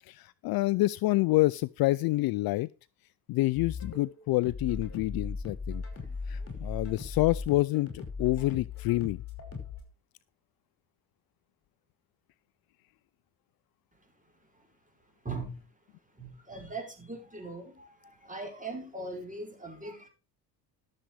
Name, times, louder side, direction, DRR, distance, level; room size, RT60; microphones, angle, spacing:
voice 1, 0.1-2.7 3.3-5.8 6.3-9.2, left 19 dB, 50° left, 0.5 m, -27 dB
sound 1, 3.5-9.8, left 4 dB, 30° left, 5.8 m, -38 dB
voice 2, 5.9-6.8 14.0-14.7 15.2-15.7 16.1-20.1, right 3 dB, 15° right, 5.4 m, -41 dB
12.5 x 7.5 x 4.8 m
hypercardioid pair, 65°, 47 cm